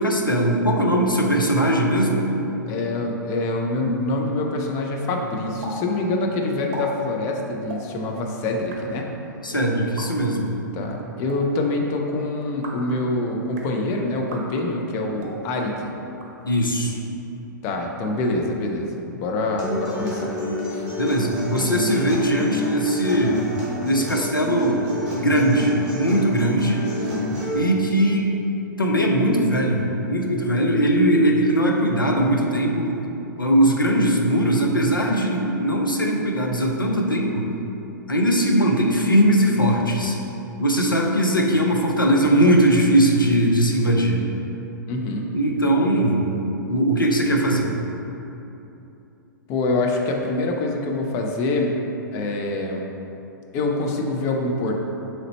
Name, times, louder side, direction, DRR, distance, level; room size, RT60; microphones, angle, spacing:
voice 1, 0.0-2.3 9.4-10.5 16.4-17.0 21.0-23.4 23.8-24.8 25.1-26.8 27.5-28.3 28.8-32.9 33.4-37.5 38.1-40.2 40.6-44.2 45.3-46.3 46.7-47.7, right 1 dB, 85° left, 0 dB, 0.6 m, -20 dB
voice 2, 2.7-9.1 10.7-15.9 17.6-18.9 19.1-20.3 20.7-20.9 44.9-45.3 49.5-51.7 52.1-52.8 53.5-54.9, left 2 dB, 30° left, 1 dB, 0.5 m, -25 dB
sound 1, 5.6-5.8 6.0-6.1 6.5-6.8 7.6-7.8 8.5-8.8 9.8-10.1 11.1-11.4 12.4-12.9 13.4-13.7 14.2-14.4 15.1-15.4 16.1-16.8, right 3 dB, 45° right, 0.7 m, -39 dB
Acoustic guitar, 19.6-27.6, left 2 dB, 10° right, 1.3 m, -29 dB
3.8 x 3.2 x 4.1 m, 3.0 s
figure-of-eight pair, 110°, 11 cm